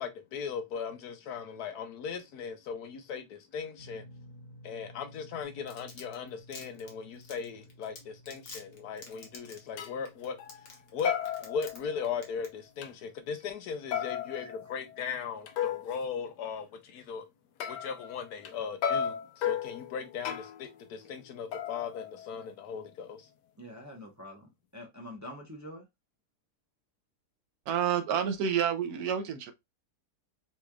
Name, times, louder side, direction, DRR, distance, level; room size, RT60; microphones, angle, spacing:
voice 1, 0.0-4.0 4.6-10.4 10.9-17.3 17.7-23.3, left 6 dB, 70° left, 1.3 m, -38 dB
sound 1, 3.8-16.0 16.3-16.5 18.2-18.3, equal, 15° left, 1.4 m, -56 dB
Domestic sounds home sounds, 5.4-11.8 12.0-12.5 12.8-12.9, left 3 dB, 40° left, 1.1 m, -47 dB
sound 2, 9.2-9.3 9.8-10.0 10.4-10.8 11.0-12.3 12.8-12.9 13.9-15.9 17.6-18.5 18.8-20.7 21.5-22.7, left 9 dB, 90° left, 1.2 m, -35 dB
voice 2, 23.6-25.8, left 1 dB, 20° right, 0.5 m, -45 dB
voice 3, 27.7-29.5, right 8 dB, 70° right, 1.1 m, -29 dB
4.1 x 3.1 x 2.3 m
omnidirectional pair, 1.8 m